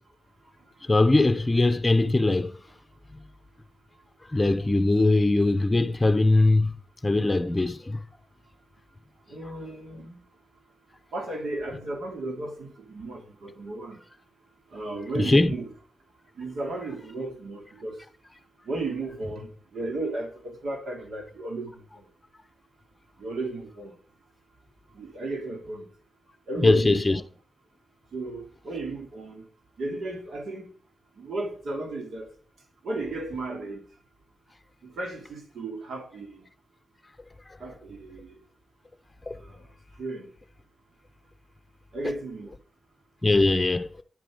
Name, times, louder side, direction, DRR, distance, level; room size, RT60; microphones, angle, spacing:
voice 1, 0.9-2.6 4.3-6.7 7.0-8.0 15.2-15.5 26.6-27.2 39.3-39.4 43.2-44.0, left 2 dB, 20° left, 0.7 m, -21 dB
voice 2, 9.3-10.2 11.1-14.0 14.7-15.7 16.4-18.0 18.6-22.1 23.2-23.9 24.9-25.9 26.5-27.2 28.1-29.5 29.8-30.7 31.2-32.3 32.8-33.8 34.8-36.4 37.6-38.4 39.3-39.7 40.0-40.3 41.9-42.5, right 2 dB, 90° right, 3.0 m, -34 dB
9.7 x 8.9 x 5.0 m
wide cardioid pair, 95°, 0 cm